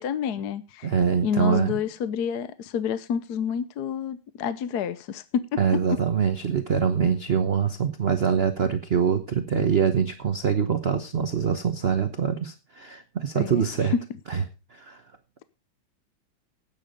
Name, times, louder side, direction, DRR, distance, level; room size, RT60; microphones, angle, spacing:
voice 1, 0.0-0.9 1.2-6.0 13.3-13.9, left 8 dB, 60° left, 1.2 m, -29 dB
voice 2, 0.8-1.8 5.6-13.9 14.3-14.4 14.7-15.0, right 7 dB, 45° right, 0.9 m, -24 dB
12.0 x 9.3 x 5.2 m
omnidirectional pair, 2.2 m